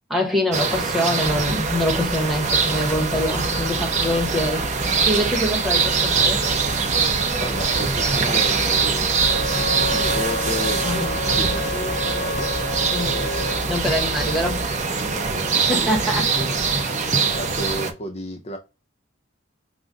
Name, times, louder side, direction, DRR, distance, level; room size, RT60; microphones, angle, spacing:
voice 1, 0.1-6.4 10.7-11.2 12.9-13.2 13.7-14.6 15.7-16.2, left 1 dB, ahead, 1.0 m, -24 dB
sound 1, 0.5-17.9, right 5 dB, 35° right, 0.7 m, -23 dB
sound 2, 1.2-14.8, left 1 dB, 55° right, 2.0 m, -34 dB
voice 2, 7.4-14.2 15.0-16.6 16.9-18.6, left 1 dB, 30° left, 0.5 m, -33 dB
Wind instrument woodwind instrument, 9.2-13.6, left 2 dB, 70° left, 0.7 m, -29 dB
5.0 x 2.0 x 3.7 m
head